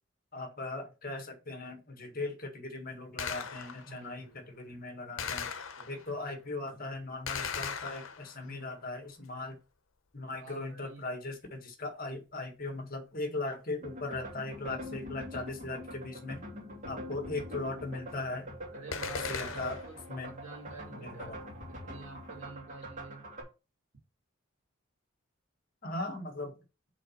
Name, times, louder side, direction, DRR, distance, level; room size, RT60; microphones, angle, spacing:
voice 1, 0.3-5.5 5.9-9.6 10.1-16.4 16.9-18.5 19.3-19.8 20.1-20.3 20.9-21.6 25.8-26.5, left 2 dB, 45° left, 1.7 m, -39 dB
Gunshot gunfire, 3.2-4.0 5.2-6.2 7.3-8.5 18.9-20.0, left 6 dB, 80° left, 0.8 m, -38 dB
voice 2, 3.8-4.5 5.8-6.5 8.4-9.0 10.3-11.1 16.0-16.7 18.7-21.4 21.7-23.2, right 3 dB, 85° right, 2.4 m, -49 dB
sound 1, 13.8-23.4, equal, 40° right, 2.5 m, -44 dB
5.0 x 4.0 x 5.7 m
head